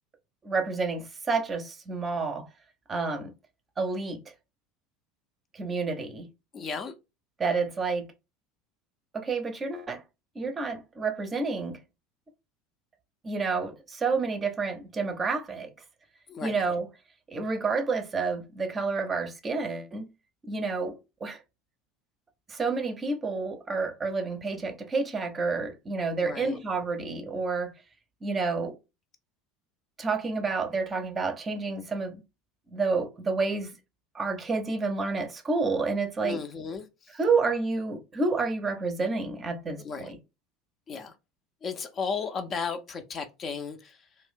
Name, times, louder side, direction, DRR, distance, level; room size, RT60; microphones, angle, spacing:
voice 1, 0.4-2.5 2.9-3.3 3.8-4.2 5.5-6.3 7.4-8.1 9.1-10.0 10.4-11.8 13.2-15.7 16.4-16.9 17.3-20.1 20.5-21.4 22.5-27.7 28.2-28.7 30.0-32.2 32.7-33.7 34.1-36.4 37.1-40.2, right 4 dB, 25° right, 0.6 m, -29 dB
voice 2, 6.5-6.9 16.3-16.5 26.2-26.6 36.2-36.9 39.8-40.1 40.9-41.1 41.6-43.9, left 5 dB, 35° left, 0.5 m, -34 dB
2.5 x 2.1 x 3.6 m
figure-of-eight pair, 70°, 0 cm